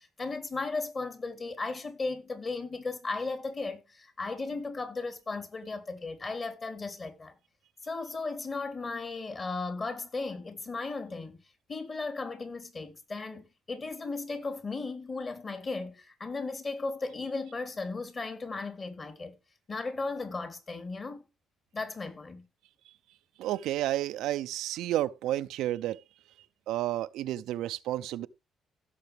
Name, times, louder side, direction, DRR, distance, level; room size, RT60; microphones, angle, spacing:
voice 1, 0.0-7.3 7.8-11.4 11.7-19.3 19.7-21.2 21.7-22.4, left 3 dB, 35° left, 3.5 m, -36 dB
voice 2, 23.4-26.0 26.7-28.3, right 14 dB, 90° right, 0.6 m, -31 dB
16.0 x 6.9 x 3.4 m
cardioid pair, 110°, 0 cm